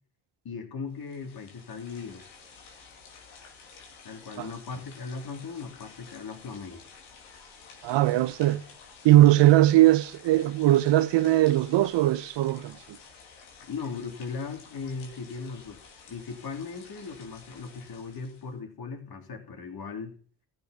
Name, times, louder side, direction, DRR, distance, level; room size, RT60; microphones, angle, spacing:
voice 1, 0.4-2.2 4.0-6.8 13.7-15.8 16.1-20.2, left 5 dB, 50° left, 3.5 m, -38 dB
sound 1, 0.9-18.5, left 5 dB, 85° left, 2.8 m, -51 dB
voice 2, 7.8-8.6 9.0-12.8, right 15 dB, 65° right, 0.9 m, -20 dB
14.0 x 6.8 x 5.8 m
supercardioid pair, 60°, 46 cm